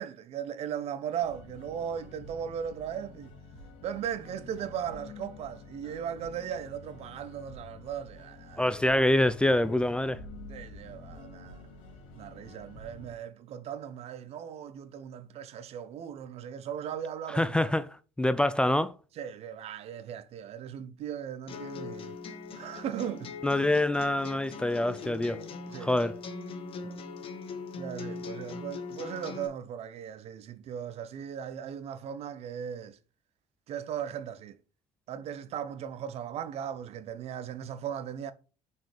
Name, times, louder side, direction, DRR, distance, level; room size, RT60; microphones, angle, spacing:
voice 1, 0.0-3.3 3.8-8.7 10.5-11.6 12.1-17.7 19.1-22.2 22.5-23.3 25.7-26.1 26.8-27.0 27.8-33.0 33.7-34.6 35.1-38.3, right 9 dB, 60° right, 0.7 m, -38 dB
sound 1, 1.2-13.1, left 3 dB, 80° left, 2.4 m, -48 dB
voice 2, 8.6-10.2 17.3-17.9 18.2-18.9 23.4-25.4 25.8-26.2, left 1 dB, 10° left, 0.3 m, -25 dB
sound 2, 21.5-29.5, left 4 dB, 50° left, 1.1 m, -41 dB
6.1 x 4.6 x 3.4 m
cardioid pair, 110°, 12 cm